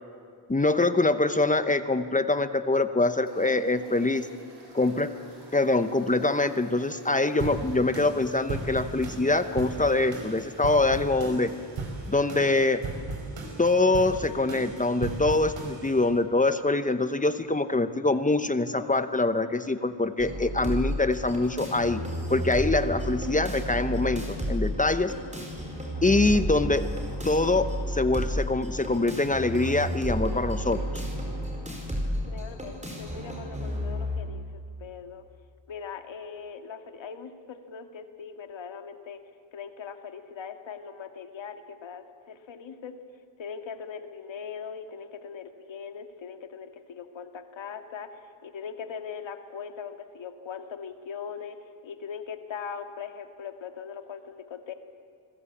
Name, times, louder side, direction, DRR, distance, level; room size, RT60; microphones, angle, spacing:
voice 1, 0.5-4.3 4.7-5.1 5.5-11.5 12.1-12.8 13.6-22.0 22.3-25.1 26.0-26.8 27.2-30.8, left 2 dB, 15° left, 10 dB, 0.8 m, -24 dB
sound 1, 3.2-12.8, right 2 dB, 60° right, 8.0 m, -51 dB
sound 2, 7.4-16.1, right 3 dB, 90° right, 5.2 m, -37 dB
sound 3, 20.2-34.2, equal, 15° right, 4.8 m, -32 dB
voice 2, 32.3-35.2 35.7-39.2 39.5-43.0 43.4-54.7, left 6 dB, 85° left, 7 dB, 2.1 m, -40 dB
27.5 x 20.5 x 8.5 m, 2.3 s
wide cardioid pair, 165°, 45 cm